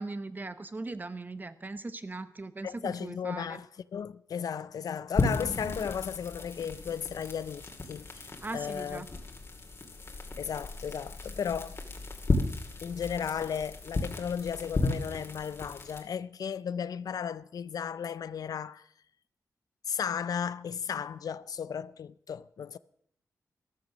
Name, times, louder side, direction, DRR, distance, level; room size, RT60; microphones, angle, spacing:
voice 1, 0.0-3.6 8.4-9.1, right 3 dB, 30° right, 1.0 m, -39 dB
voice 2, 2.6-3.7 3.9-9.1 10.4-11.8 12.8-18.9 19.9-22.8, left 7 dB, 80° left, 0.5 m, -35 dB
sound 1, 5.1-16.0, left 2 dB, 40° left, 2.3 m, -34 dB
14.0 x 13.5 x 6.2 m
wide cardioid pair, 95°, 6 cm